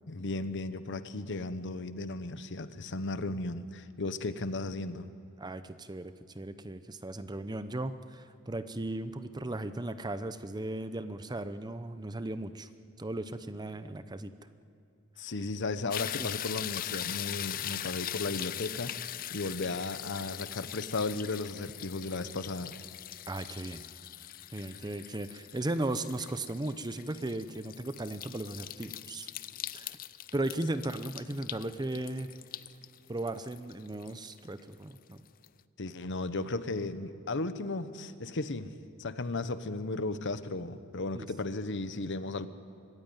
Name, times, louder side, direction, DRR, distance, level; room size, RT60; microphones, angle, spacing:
voice 1, 0.1-5.1 15.2-19.0 19.3-22.8 35.8-38.7 39.0-42.5, left 2 dB, 55° left, 12 dB, 0.9 m, -35 dB
voice 2, 5.4-12.7 13.0-14.3 16.2-16.3 23.3-23.8 24.5-29.3 29.7-30.0 30.3-32.3 33.1-35.2 41.1-41.3, right 2 dB, 20° right, 11 dB, 0.6 m, -36 dB
sound 1, 15.9-35.0 35.4-35.5, left 12 dB, 40° left, 0.5 m, -41 dB
24.5 x 15.0 x 9.2 m, 2.7 s
head